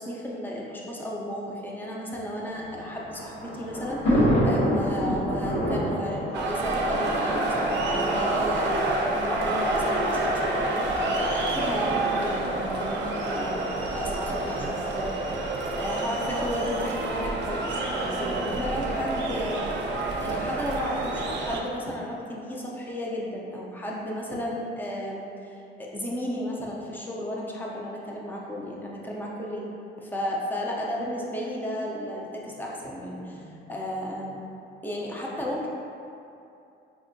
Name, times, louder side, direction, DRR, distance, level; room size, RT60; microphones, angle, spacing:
voice 1, 0.0-29.7 30.0-34.4 34.8-35.7, equal, 10° left, -3 dB, 0.4 m, -33 dB
Thunder, 2.6-7.9 8.7-8.8 9.1-9.2 10.2-10.5, equal, 80° left, 1.2 m, -26 dB
sound 1, 6.3-21.6, right 2 dB, 60° right, 0.5 m, -28 dB
5.0 x 2.6 x 2.5 m, 2.7 s
cardioid pair, 155°, 21 cm